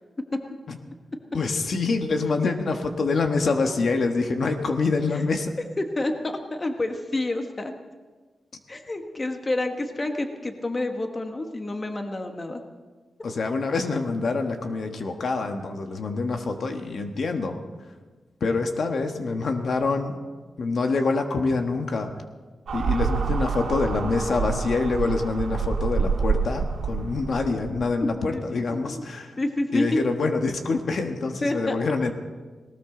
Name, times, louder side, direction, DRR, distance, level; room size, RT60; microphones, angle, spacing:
voice 1, 1.3-5.6 13.2-17.9 18.4-20.2 20.6-22.2 22.7-29.4 29.7-32.1, left 3 dB, 60° left, 5 dB, 1.4 m, -26 dB
voice 2, 6.0-7.7 8.7-12.6 28.0-29.0 29.4-30.0 31.4-31.8, left 2 dB, 30° left, 5 dB, 1.3 m, -28 dB
sound 1, 22.7-27.9, right 5 dB, 85° right, 1.9 m, -27 dB
19.5 x 18.5 x 3.9 m, 1.4 s
wide cardioid pair, 110°, 0 cm